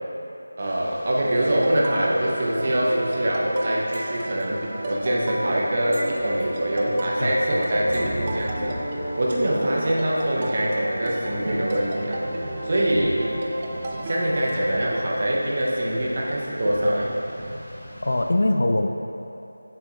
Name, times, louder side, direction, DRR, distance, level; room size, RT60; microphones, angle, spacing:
Rain, 0.6-18.2, equal, 5° right, 1.3 m, -39 dB
voice 1, 0.6-8.7 9.2-12.2 12.6-13.2 14.0-17.1, right 1 dB, 40° right, -4 dB, 1.0 m, -24 dB
sound 1, 1.4-15.1, right 1 dB, 20° right, 0.4 m, -33 dB
sound 2, 3.9-4.5 5.9-6.6 7.9-8.5, right 1 dB, 85° right, 1.0 m, -39 dB
voice 2, 7.2-7.6 18.0-18.9, left 1 dB, 65° left, 5 dB, 0.4 m, -22 dB
7.1 x 7.0 x 2.7 m, 2.9 s
figure-of-eight pair, 170°, 0 cm